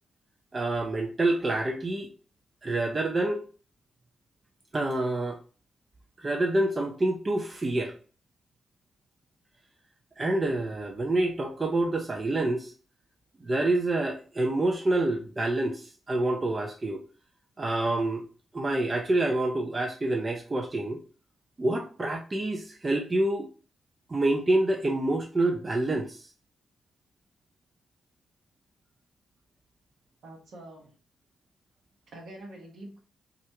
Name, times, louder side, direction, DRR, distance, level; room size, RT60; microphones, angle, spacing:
voice 1, 0.5-2.1 2.6-3.4 4.7-5.4 6.2-7.9 10.2-12.7 13.4-17.0 17.6-18.2 18.5-21.0 21.6-23.5 24.1-26.3, right 2 dB, 35° right, 0.4 m, -27 dB
voice 2, 30.2-30.9 32.1-33.0, right 1 dB, 65° right, 0.8 m, -45 dB
2.4 x 2.1 x 2.8 m
hypercardioid pair, 40°, 0 cm